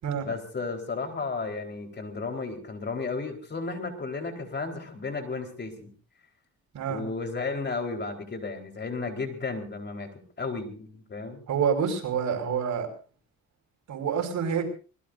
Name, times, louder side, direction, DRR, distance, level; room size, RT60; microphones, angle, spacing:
voice 1, 0.2-5.9 6.9-11.4, left 4 dB, 35° left, 4 dB, 4.3 m, -33 dB
voice 2, 11.5-12.9 13.9-14.7, right 7 dB, 70° right, 3 dB, 5.6 m, -27 dB
25.5 x 20.5 x 2.7 m, 0.39 s
cardioid pair, 90°, 30 cm